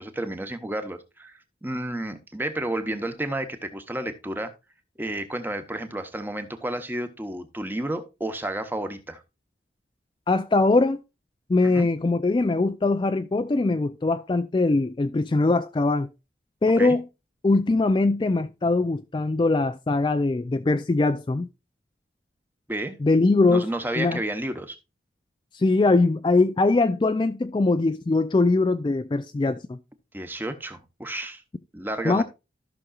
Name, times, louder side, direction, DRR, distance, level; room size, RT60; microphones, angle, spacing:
voice 1, 0.0-4.5 5.0-9.2 11.6-11.9 16.8-17.0 22.7-23.0 23.5-24.8 30.1-31.4 31.7-32.2, right 1 dB, 10° right, 0.9 m, -31 dB
voice 2, 10.3-11.0 11.5-16.1 16.6-17.0 17.4-21.5 23.0-23.6 24.0-24.2 25.5-29.8 32.0-32.2, left 3 dB, 25° left, 0.3 m, -22 dB
14.0 x 6.0 x 2.4 m
head